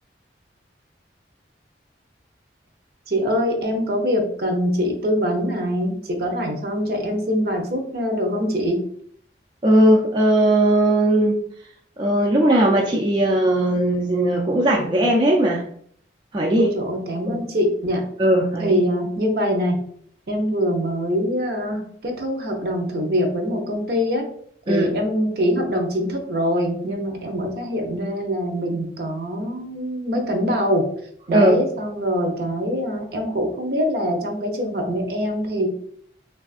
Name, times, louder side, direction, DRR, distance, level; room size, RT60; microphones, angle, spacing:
voice 1, 3.1-8.8 16.6-18.0 18.6-19.8 20.3-24.2 24.7-30.8 31.3-35.7, equal, 55° right, 3 dB, 0.6 m, -23 dB
voice 2, 9.6-11.4 12.0-15.6 16.3-16.7 17.3-17.4 18.2-18.8 24.7-24.9 31.3-31.6, right 1 dB, 25° right, -2 dB, 0.3 m, -18 dB
3.4 x 2.3 x 2.4 m, 0.62 s
head